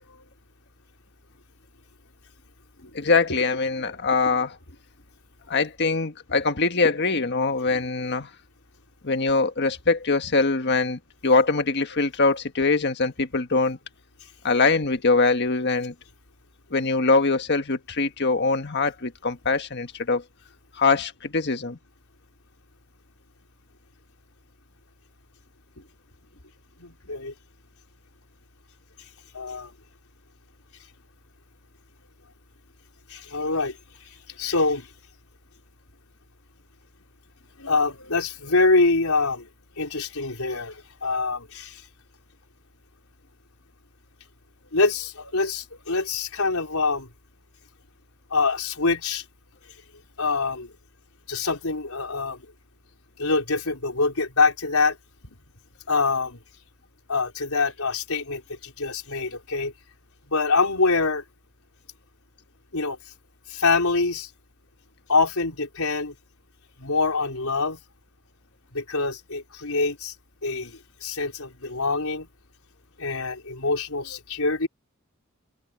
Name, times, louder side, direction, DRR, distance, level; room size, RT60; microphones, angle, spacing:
voice 1, 2.8-4.6 5.5-8.3 9.0-13.8 14.4-15.9 16.7-20.2 20.7-21.8, left 3 dB, 50° left, 1.6 m, -23 dB
voice 2, 26.8-27.3 29.3-29.7 33.1-34.9 37.6-39.5 39.8-41.8 44.7-47.1 48.3-49.2 50.2-50.7 51.3-52.4 53.2-55.0 55.9-56.4 57.1-59.7 60.3-61.2 62.7-63.0 63.5-64.3 65.1-66.1 66.8-67.8 68.7-70.1 70.4-72.3 73.0-74.7, left 3 dB, 85° left, 4.3 m, -25 dB
head